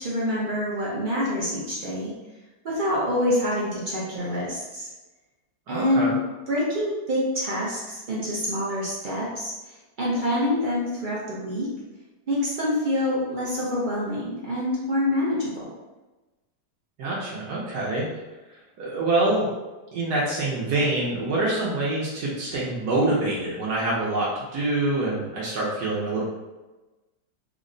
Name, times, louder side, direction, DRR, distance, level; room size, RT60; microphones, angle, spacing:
voice 1, 0.0-2.1 2.6-4.9 5.7-6.1 6.5-11.7 12.3-15.7, left 1 dB, 50° right, -6 dB, 0.5 m, -26 dB
voice 2, 5.7-6.1 17.0-18.1 18.8-19.5 19.9-26.2, right 2 dB, 70° right, -5 dB, 1.3 m, -25 dB
3.5 x 2.1 x 3.7 m, 1.1 s
omnidirectional pair, 1.8 m